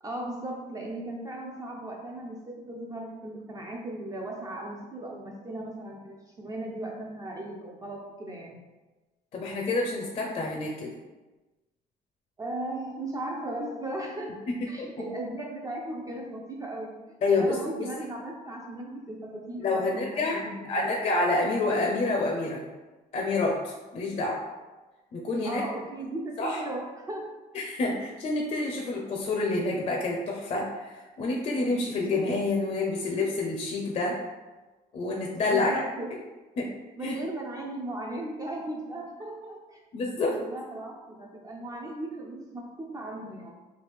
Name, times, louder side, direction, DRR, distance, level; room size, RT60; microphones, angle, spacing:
voice 1, 0.0-8.6 12.4-17.0 17.3-20.9 25.4-27.3 35.5-36.1 37.0-39.8 40.3-43.5, right 1 dB, 20° right, -1 dB, 0.4 m, -37 dB
voice 2, 9.3-11.0 14.8-14.9 17.2-17.9 19.6-20.4 20.7-22.6 23.1-24.4 25.1-25.6 26.4-26.6 27.5-34.2 34.9-35.7 36.6-36.7 37.0-37.1 39.9-40.4, left 3 dB, 40° left, 0 dB, 0.5 m, -28 dB
3.2 x 2.3 x 3.3 m, 1.2 s
cardioid pair, 110°, 17 cm